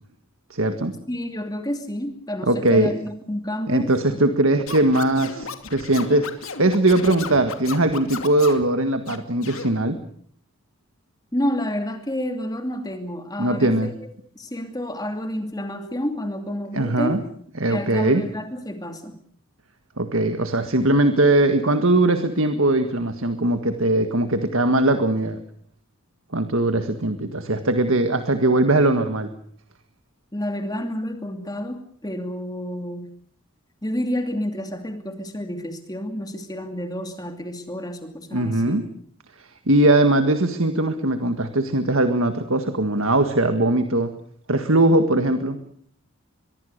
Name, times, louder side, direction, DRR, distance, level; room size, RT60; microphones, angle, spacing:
voice 1, 0.5-0.9 2.5-2.9 3.7-10.0 13.4-13.9 16.7-17.2 17.6-18.2 20.0-25.4 26.3-29.3 38.3-38.8 39.4-44.1 44.5-45.6, right 2 dB, 70° right, 8 dB, 1.8 m, -20 dB
voice 2, 1.1-3.9 11.3-13.9 14.3-17.2 17.7-19.1 30.3-33.1 33.8-38.8, equal, 15° left, 5 dB, 2.5 m, -29 dB
Scratching (performance technique), 4.7-8.7 9.1-9.7, left 5 dB, 70° left, 2.5 m, -34 dB
24.5 x 22.5 x 6.7 m, 0.62 s
head